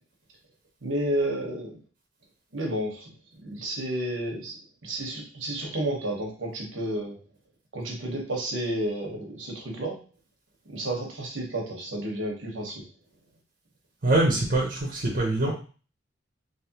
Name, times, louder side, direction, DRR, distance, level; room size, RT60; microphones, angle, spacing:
voice 1, 0.8-1.8 2.5-3.1 3.4-4.6 4.8-7.2 7.7-10.0 10.7-12.8, right 1 dB, 90° right, -1 dB, 1.2 m, -31 dB
voice 2, 14.0-15.5, right 2 dB, 50° right, -2 dB, 0.8 m, -23 dB
3.4 x 3.1 x 2.9 m, 0.38 s
head